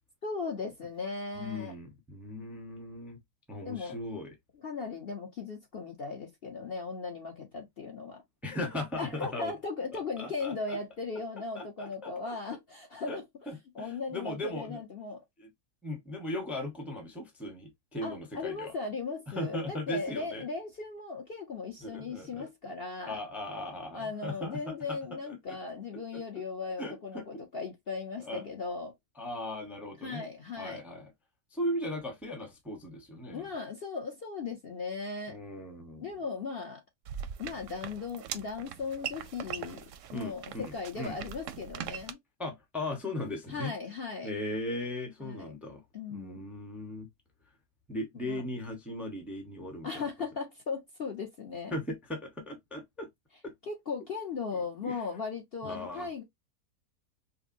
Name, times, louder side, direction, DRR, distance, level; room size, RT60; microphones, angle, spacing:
voice 1, 0.2-1.7 3.6-4.0 4.6-8.2 8.9-13.2 13.7-15.2 18.0-23.2 23.9-28.9 30.0-30.8 33.3-35.4 36.0-36.8 37.4-42.2 43.5-44.3 45.2-45.5 45.9-46.5 48.1-48.4 49.8-51.7 53.7-56.2, left 4 dB, 45° left, 0.9 m, -37 dB
voice 2, 1.4-3.2 3.5-4.3 8.4-9.5 9.9-10.8 11.5-12.4 13.1-13.2 13.5-14.8 15.4-15.5 15.8-18.7 19.4-20.5 21.8-22.5 23.0-25.0 25.5-25.6 25.9-26.2 26.8-27.4 28.2-28.4 29.2-30.2 30.6-31.1 31.5-33.5 35.3-36.1 40.1-41.2 42.4-43.7 44.2-45.8 46.1-47.1 47.9-50.0 51.7-53.1 53.4-53.5 54.8-55.0 55.6-56.1, left 1 dB, ahead, 0.8 m, -38 dB
sound 1, 37.0-42.1, right 9 dB, 65° right, 0.8 m, -41 dB
5.2 x 2.1 x 2.6 m
omnidirectional pair, 1.6 m